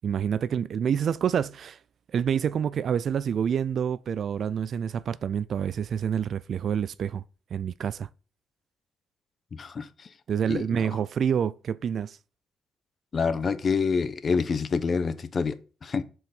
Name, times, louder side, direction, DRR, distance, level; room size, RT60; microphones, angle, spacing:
voice 1, 0.0-1.8 2.1-7.2 7.5-8.1 10.3-12.2, right 8 dB, 60° right, 0.3 m, -27 dB
voice 2, 9.5-10.1 10.5-10.8 13.1-16.0, left 5 dB, 45° left, 0.9 m, -27 dB
7.6 x 4.7 x 5.4 m
cardioid pair, 90°, 0 cm